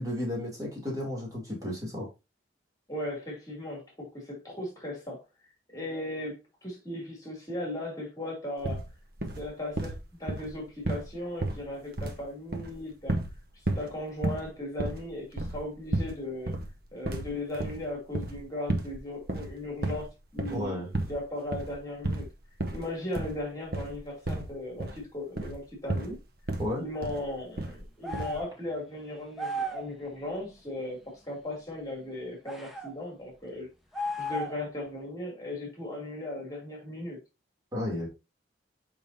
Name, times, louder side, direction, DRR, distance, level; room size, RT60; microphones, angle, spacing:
voice 1, 0.0-2.1 20.5-20.9 26.6-26.8 37.7-38.1, left 1 dB, 20° right, 2.7 m, -33 dB
voice 2, 2.9-5.2 5.7-8.9 9.4-13.2 13.8-16.6 16.9-20.1 20.3-22.3 22.7-26.2 26.8-33.7 34.2-37.2, left 1 dB, 20° left, 2.6 m, -37 dB
sound 1, 8.6-8.9 9.2-9.5 9.8-11.1 11.4-12.2 12.5-13.4 13.7-13.9 14.2-14.5 14.8-16.2 16.5-16.7 17.0-18.4 18.7-19.0 19.2-20.1 20.4-20.7 20.9-21.2 21.5-21.8 22.0-22.3 22.6-22.8 23.1-23.4 23.7-24.0 24.3-25.0 25.4-25.6 25.9-26.2 26.5-26.7 27.0-27.3 27.6-27.8 28.1-28.4, right 2 dB, 60° right, 1.0 m, -32 dB
sound 2, 28.0-28.6 29.4-29.9 32.4-32.9 33.9-34.7, equal, ahead, 0.9 m, -34 dB
7.0 x 5.2 x 2.7 m
head